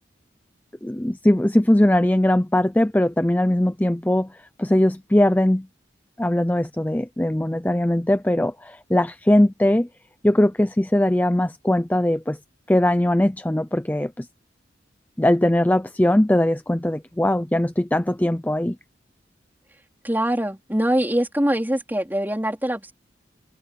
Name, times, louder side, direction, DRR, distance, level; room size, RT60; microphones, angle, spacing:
voice 1, 0.8-4.3 4.6-5.7 6.2-9.9 10.2-12.4 12.7-14.3 15.2-18.8, left 1 dB, 10° left, 0.5 m, -20 dB
voice 2, 20.0-22.9, right 1 dB, 10° right, 4.2 m, -23 dB
head